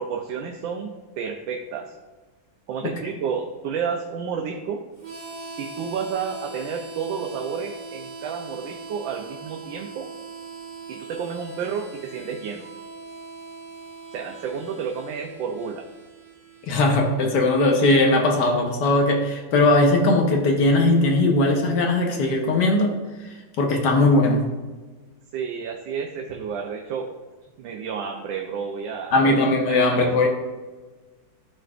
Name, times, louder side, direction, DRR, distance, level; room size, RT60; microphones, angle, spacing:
voice 1, 0.0-1.9 2.7-4.8 5.6-10.1 10.9-12.7 14.1-15.8 25.3-27.1 27.6-29.4 29.7-30.3, right 6 dB, 80° right, 2 dB, 1.4 m, -31 dB
Harmonica, 5.0-17.6, right 3 dB, 55° right, 2.4 m, -41 dB
voice 2, 16.7-22.9 23.6-24.4 29.1-30.3, left 2 dB, 65° left, 2 dB, 1.5 m, -19 dB
12.5 x 4.4 x 2.5 m, 1.3 s
omnidirectional pair, 2.1 m